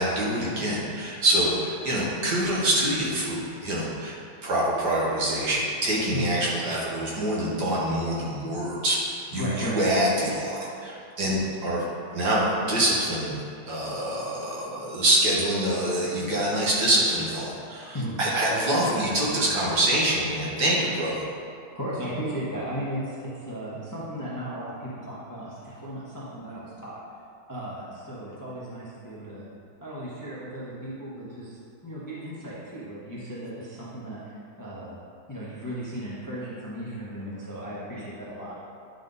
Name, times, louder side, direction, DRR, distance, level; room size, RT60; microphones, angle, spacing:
voice 1, 0.0-4.2 4.4-11.8 12.1-13.4 13.7-21.2, right 1 dB, 60° right, -5 dB, 1.8 m, -25 dB
voice 2, 9.3-9.8 17.9-18.2 21.7-27.0 27.5-29.5 29.8-34.9 35.3-38.5, right 1 dB, 15° left, -8 dB, 0.6 m, -35 dB
9.8 x 3.8 x 4.0 m, 2.5 s
omnidirectional pair, 2.1 m